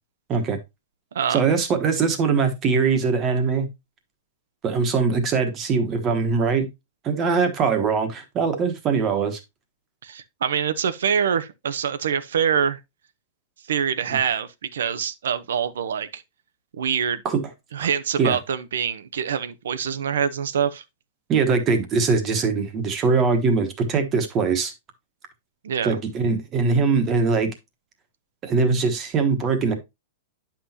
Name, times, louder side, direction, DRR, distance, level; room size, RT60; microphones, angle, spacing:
voice 1, 1.3-3.7 4.6-6.7 7.0-9.4 17.2-17.4 17.8-17.9 18.2-18.4 21.3-24.7 25.8-27.5 28.4-29.8, right 5 dB, 15° right, 1.1 m, -22 dB
voice 2, 10.0-12.8 13.7-16.2 16.8-17.2 17.7-20.8 25.6-26.0, right 7 dB, 85° right, 0.8 m, -25 dB
9.8 x 5.9 x 2.8 m
supercardioid pair, 180°, 0 cm